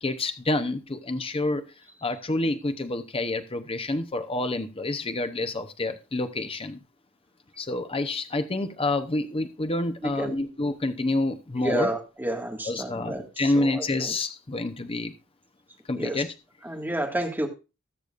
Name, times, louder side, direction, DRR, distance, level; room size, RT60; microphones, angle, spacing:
voice 1, 0.0-1.6 2.0-6.8 7.6-11.9 12.7-15.1 15.9-16.3, left 2 dB, 25° left, 0.8 m, -28 dB
voice 2, 10.2-10.5 11.6-13.2 13.6-13.8 16.0-16.2 16.6-17.5, right 1 dB, 10° right, 1.8 m, -29 dB
20.0 x 6.7 x 2.5 m
head